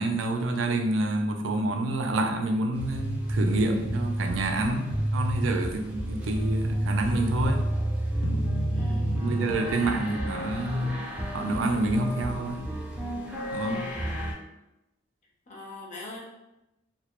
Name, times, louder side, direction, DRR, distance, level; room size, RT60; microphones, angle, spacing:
voice 1, 0.0-7.7 9.2-11.0 11.3-12.8 13.5-13.8, right 2 dB, 85° right, 4 dB, 0.4 m, -28 dB
sound 1, 2.8-14.3, right 1 dB, 5° right, 0.4 m, -30 dB
sound 2, 8.2-11.4, left 2 dB, 90° left, 0.3 m, -38 dB
voice 2, 8.7-9.3 9.6-11.1 13.6-14.1 15.5-16.2, left 2 dB, 40° left, -3 dB, 0.6 m, -45 dB
2.1 x 2.0 x 2.9 m, 0.92 s
head